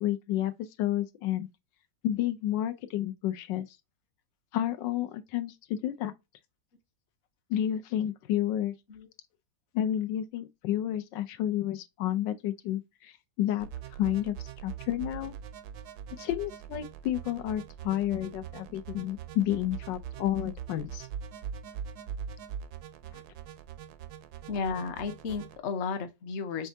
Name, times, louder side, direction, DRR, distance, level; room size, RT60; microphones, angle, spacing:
voice 1, 0.0-0.5 0.8-1.5 2.0-3.7 4.5-6.1 7.5-8.7 9.7-13.7 14.0-15.3 16.2-21.1 23.1-23.2, left 12 dB, 85° left, 1.3 m, -30 dB
sound 1, 13.6-25.6, right 8 dB, 70° right, 1.0 m, -42 dB
voice 2, 24.5-26.7, left 5 dB, 50° left, 0.9 m, -33 dB
5.4 x 3.4 x 2.6 m
omnidirectional pair, 1.9 m